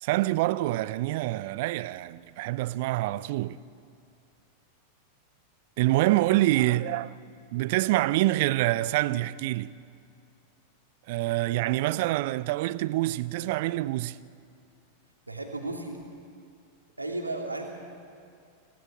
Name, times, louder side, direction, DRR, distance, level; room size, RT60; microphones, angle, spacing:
voice 1, 0.0-3.6 5.8-7.1 7.5-9.8 11.1-14.2, right 17 dB, 50° right, 0.6 m, -26 dB
voice 2, 15.3-16.0 17.0-17.8, right 2 dB, 85° right, 2.8 m, -34 dB
26.5 x 17.5 x 8.8 m
figure-of-eight pair, 90°, 0 cm